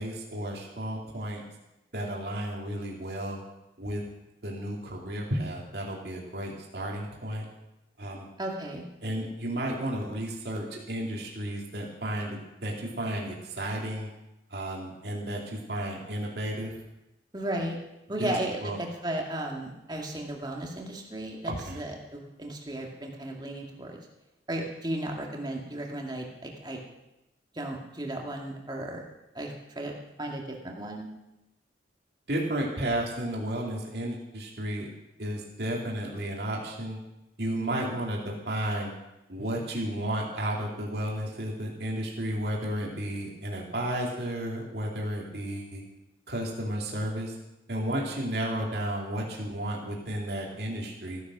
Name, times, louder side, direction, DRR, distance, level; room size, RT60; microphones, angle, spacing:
voice 1, 0.0-1.4 1.9-3.4 3.8-4.0 4.4-7.5 8.0-8.3 9.0-14.1 14.5-16.7 18.2-18.3 18.6-18.8 21.5-21.8 32.3-34.9 35.2-37.0 37.4-39.0 39.3-45.8 46.3-47.4 47.7-51.2, right 1 dB, 60° right, -2 dB, 2.8 m, -33 dB
voice 2, 8.4-8.9 17.3-17.8 18.1-24.0 24.5-26.8 27.5-29.0 29.3-31.1, right 1 dB, 25° right, 0 dB, 2.2 m, -35 dB
15.5 x 10.5 x 6.2 m, 0.94 s
head